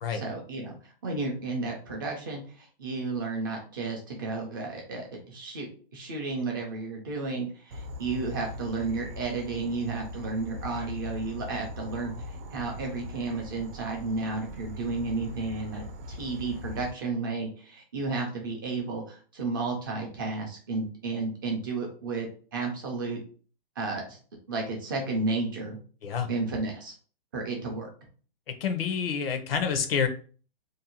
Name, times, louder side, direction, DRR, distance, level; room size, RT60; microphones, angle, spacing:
voice 1, 0.1-23.2 23.8-24.2 24.5-25.8 26.3-26.9 27.3-27.9, right 3 dB, 25° right, 0 dB, 0.3 m, -32 dB
Insect / Frog, 7.7-16.9, left 1 dB, 70° right, 0.7 m, -41 dB
voice 2, 28.6-30.1, left 6 dB, 75° left, 8 dB, 0.6 m, -28 dB
2.6 x 2.1 x 2.8 m, 0.41 s
hypercardioid pair, 165°, 29 cm